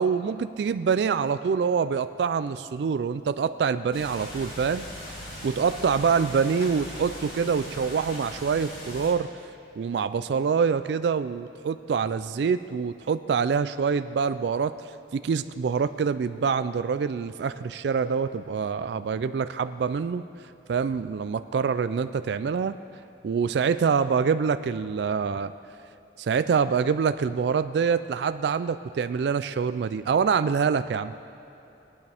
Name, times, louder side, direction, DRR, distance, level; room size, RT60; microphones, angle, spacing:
voice 1, 0.0-4.8 5.4-9.3 9.8-14.7 15.1-20.2 20.7-22.8 23.2-25.5 26.2-31.1, right 6 dB, 65° right, 12 dB, 0.3 m, -25 dB
sound 1, 3.9-9.1, equal, 50° left, 3.0 m, -39 dB
21.5 x 9.4 x 3.4 m, 2.9 s
head